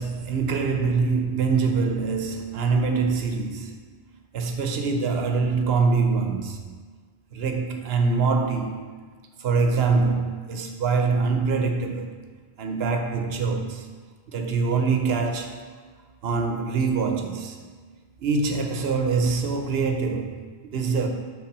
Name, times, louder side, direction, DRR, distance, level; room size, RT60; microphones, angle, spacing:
voice 1, 0.0-3.7 4.3-6.7 7.3-9.0 9.4-12.1 12.6-13.9 14.3-15.6 16.2-17.6 18.2-21.1, right 4 dB, 75° right, 0.9 m, -24 dB
5.8 x 3.7 x 5.3 m
omnidirectional pair, 1.0 m